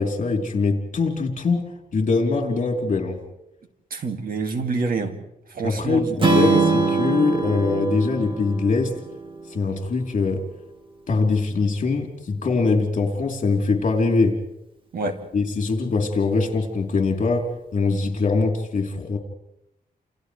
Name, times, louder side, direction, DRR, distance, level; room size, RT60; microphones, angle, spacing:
voice 1, 0.0-3.2 5.6-8.9 9.5-10.4 11.1-14.4 15.3-19.2, left 3 dB, 50° left, 3.4 m, -22 dB
voice 2, 3.9-5.2 5.5-6.6 14.9-15.2, right 3 dB, 65° right, 2.3 m, -27 dB
Strum, 6.2-10.4, right 3 dB, 30° right, 2.1 m, -23 dB
29.5 x 28.5 x 3.3 m
wide cardioid pair, 170°, 16 cm